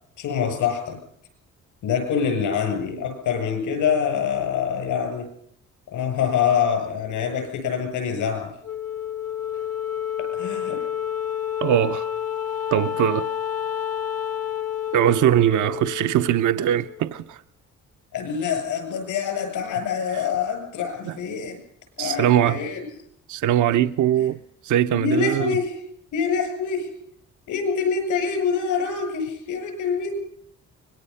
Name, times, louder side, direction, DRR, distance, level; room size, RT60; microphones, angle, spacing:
voice 1, 0.2-1.0 1.8-5.3 5.9-8.5 9.5-9.7 10.2-10.8 18.1-21.6 22.0-22.8 24.2-24.3 24.9-25.8 26.1-26.9 27.5-30.1, left 7 dB, 85° left, 7.7 m, -25 dB
Wind instrument woodwind instrument, 8.6-17.2, left 10 dB, 55° left, 0.8 m, -29 dB
voice 2, 11.6-12.1 12.7-13.3 14.9-17.4 21.1-21.2 22.0-22.6 23.3-25.6, right 11 dB, 75° right, 0.8 m, -21 dB
24.5 x 21.0 x 5.6 m
cardioid pair, 90°, 30 cm